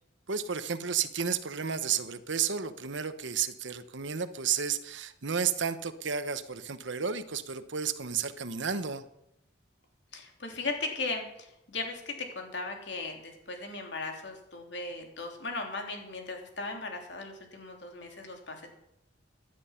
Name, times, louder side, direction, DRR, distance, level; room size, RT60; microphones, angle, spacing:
voice 1, 0.3-9.0, right 7 dB, 70° right, 12 dB, 1.0 m, -32 dB
voice 2, 10.1-18.7, left 3 dB, 60° left, 3 dB, 3.2 m, -37 dB
17.0 x 10.5 x 5.8 m, 0.81 s
head